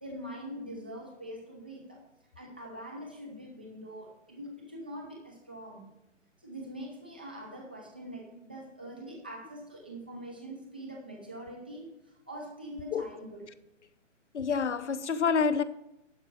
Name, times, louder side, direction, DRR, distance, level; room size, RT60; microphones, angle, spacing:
voice 1, 0.0-2.0 2.4-5.9 6.4-13.4, equal, 10° right, 0.5 m, -43 dB
voice 2, 14.3-15.6, left 5 dB, 65° left, 0.8 m, -27 dB
11.5 x 5.2 x 6.1 m
hypercardioid pair, 155°, 38 cm